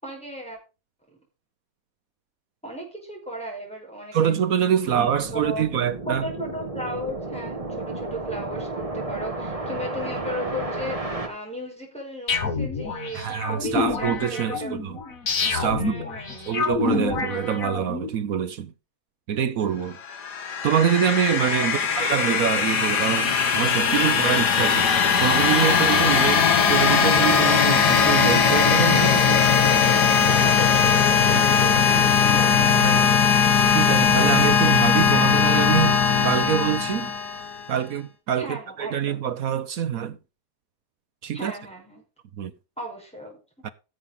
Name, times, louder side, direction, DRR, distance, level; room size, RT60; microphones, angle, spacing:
voice 1, 0.0-0.6 2.6-4.3 4.8-5.7 6.0-14.8 15.7-16.7 21.6-21.9 30.3-33.3 38.4-39.2 41.3-42.0 42.8-43.7, right 1 dB, 5° left, 4.9 m, -36 dB
voice 2, 4.1-6.3 13.1-15.0 15.5-15.9 16.5-18.7 19.3-20.0 20.6-24.9 25.2-29.5 31.3-31.6 32.7-33.1 33.7-37.1 37.7-40.2 41.2-41.5 42.4-42.5 43.6-43.7, right 9 dB, 65° right, 1.0 m, -25 dB
sound 1, 4.9-11.3, right 2 dB, 20° right, 1.8 m, -32 dB
sound 2, 12.3-18.1, left 4 dB, 50° left, 2.0 m, -28 dB
sound 3, 20.0-37.7, left 6 dB, 70° left, 2.0 m, -19 dB
16.0 x 7.3 x 3.9 m
omnidirectional pair, 1.9 m